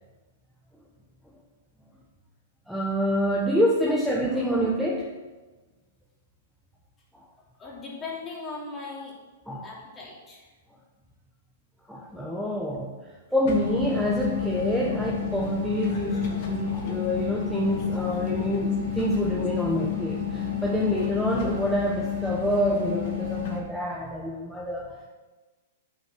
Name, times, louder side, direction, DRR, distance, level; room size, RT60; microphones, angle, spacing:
voice 1, 2.7-5.1 7.1-7.2 9.5-9.7 11.9-12.9 13.3-25.1, equal, ahead, -3 dB, 1.0 m, -27 dB
voice 2, 7.6-9.1 9.6-10.5, left 3 dB, 20° left, -3 dB, 2.9 m, -38 dB
sound 1, 13.4-23.6, left 8 dB, 55° left, 2.3 m, -30 dB
9.5 x 5.8 x 6.2 m, 1.3 s
hypercardioid pair, 135°, 0 cm